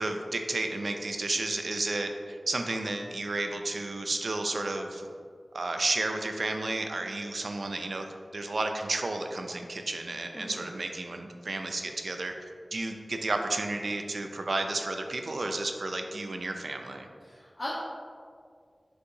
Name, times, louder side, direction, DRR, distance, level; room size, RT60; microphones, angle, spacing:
voice 1, 0.0-5.1 5.5-12.3 12.7-17.1, right 2 dB, 75° right, 5 dB, 0.4 m, -32 dB
voice 2, 17.2-17.7, left 1 dB, 45° left, -10 dB, 1.0 m, -39 dB
6.4 x 2.7 x 2.6 m, 2.1 s
wide cardioid pair, 60°, 0 cm